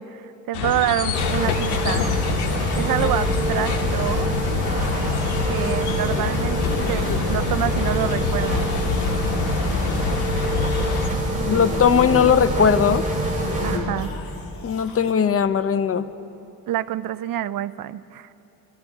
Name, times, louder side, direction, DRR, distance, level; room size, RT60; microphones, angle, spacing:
voice 1, 0.0-2.2 2.7-4.3 5.5-6.6 6.9-8.7 13.6-14.1 16.7-18.3, right 12 dB, 60° right, 16 dB, 0.5 m, -27 dB
sound 1, 0.5-11.1, left 6 dB, 85° left, 1.1 m, -26 dB
sound 2, 1.1-13.8, right 1 dB, 20° right, 3.9 m, -25 dB
sound 3, 3.6-5.5 6.6-7.2 7.5-15.1, left 6 dB, 65° left, 1.7 m, -38 dB
voice 2, 11.4-13.0 14.6-16.1, left 7 dB, 35° left, 12 dB, 0.6 m, -19 dB
26.0 x 14.0 x 3.6 m, 2.9 s
cardioid pair, 100°, 38 cm